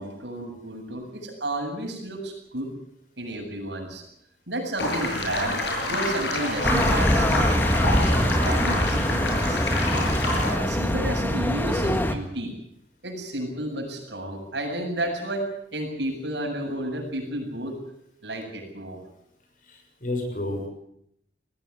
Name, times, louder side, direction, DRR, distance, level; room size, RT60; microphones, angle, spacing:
voice 1, 0.0-2.7 3.2-4.0 4.5-5.6 5.9-10.1 10.4-12.5 13.0-17.8 18.2-19.0, right 1 dB, 85° right, 1 dB, 7.9 m, -32 dB
sound 1, 4.8-10.5, left 1 dB, 85° left, 7.2 m, -27 dB
sound 2, 6.6-12.2, equal, 10° left, 1.7 m, -23 dB
voice 2, 19.7-20.7, left 2 dB, 50° left, 3 dB, 6.7 m, -31 dB
20.0 x 16.0 x 9.7 m, 0.74 s
head